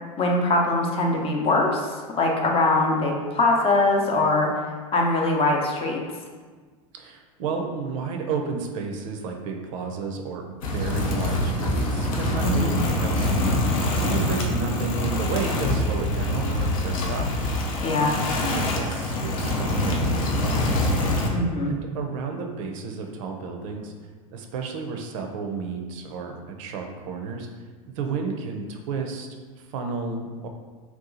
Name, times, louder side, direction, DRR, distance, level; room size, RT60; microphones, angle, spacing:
voice 1, 0.2-4.5 4.9-6.0 12.4-12.8 17.8-18.2 21.3-21.7, left 2 dB, 30° left, 1 dB, 0.6 m, -22 dB
voice 2, 6.9-17.3 18.0-20.9 21.7-23.9 24.3-27.5 28.0-29.3 29.6-30.5, right 5 dB, 65° right, 3 dB, 0.5 m, -32 dB
sound 1, 10.6-21.3, left 1 dB, 70° left, 0.6 m, -25 dB
2.8 x 2.3 x 3.8 m, 1.4 s
hypercardioid pair, 90°, 18 cm